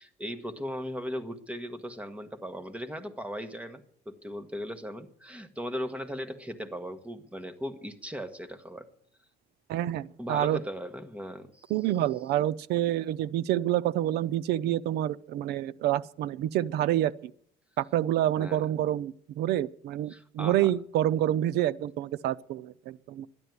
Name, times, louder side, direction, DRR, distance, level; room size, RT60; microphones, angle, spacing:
voice 1, 0.0-8.9 10.2-11.7 18.4-18.7 20.1-20.7, equal, 5° right, 1.5 m, -38 dB
voice 2, 9.7-10.6 11.7-17.3 17.8-23.3, right 12 dB, 80° right, 0.6 m, -28 dB
12.5 x 11.0 x 9.6 m
cardioid pair, 110°, 17 cm